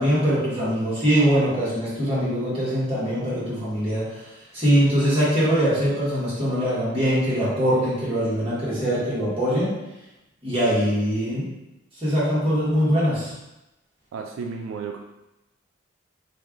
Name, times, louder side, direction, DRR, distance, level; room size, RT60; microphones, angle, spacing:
voice 1, 0.0-4.2 4.5-9.7 10.4-11.5 12.0-13.3, equal, 25° right, -10 dB, 1.4 m, -22 dB
voice 2, 14.1-15.0, right 5 dB, 80° right, 2 dB, 0.3 m, -32 dB
3.2 x 2.4 x 3.6 m, 0.95 s
head